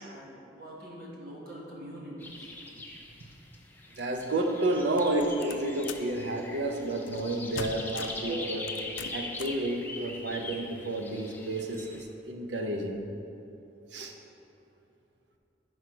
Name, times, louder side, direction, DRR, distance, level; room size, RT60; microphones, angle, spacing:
voice 1, 0.0-2.5, equal, 50° right, -4 dB, 1.3 m, -44 dB
sound 1, 2.2-12.0, left 2 dB, 10° left, 0.4 m, -42 dB
voice 2, 3.9-8.7 9.1-13.1 13.9-14.1, right 1 dB, 75° right, 4 dB, 0.6 m, -31 dB
sound 2, 5.0-6.1 7.1-7.3 7.6-8.3 8.7-9.6, left 7 dB, 85° left, 0.3 m, -42 dB
5.9 x 4.7 x 4.7 m, 2.8 s
head